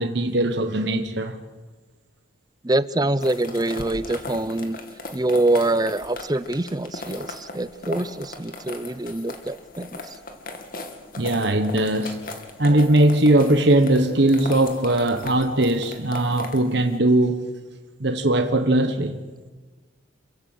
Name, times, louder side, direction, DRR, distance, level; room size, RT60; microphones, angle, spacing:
voice 1, 0.0-1.4 11.2-12.2 12.6-17.5 18.0-19.2, right 1 dB, 55° right, 1.3 m, -20 dB
voice 2, 2.6-4.8 5.1-10.1, right 2 dB, 20° right, 0.6 m, -25 dB
sound 1, 3.2-17.0, left 2 dB, 45° left, 2.6 m, -38 dB
28.0 x 15.5 x 8.0 m
head